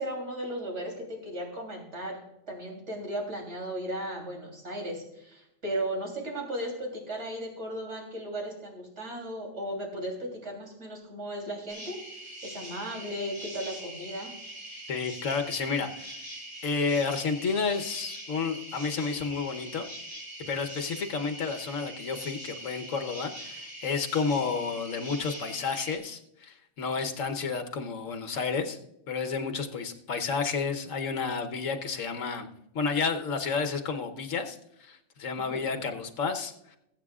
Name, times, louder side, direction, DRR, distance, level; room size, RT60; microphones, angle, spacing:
voice 1, 0.0-2.2 2.5-14.3 35.5-35.6, right 1 dB, 60° right, 0 dB, 3.6 m, -36 dB
sound 1, 11.7-26.0, right 1 dB, 15° right, 4.5 m, -43 dB
voice 2, 14.9-16.2 16.6-19.9 20.5-28.8 29.1-32.5 32.7-36.8, left 5 dB, 75° left, 5 dB, 1.4 m, -31 dB
21.5 x 8.4 x 2.4 m, 0.83 s
omnidirectional pair, 1.4 m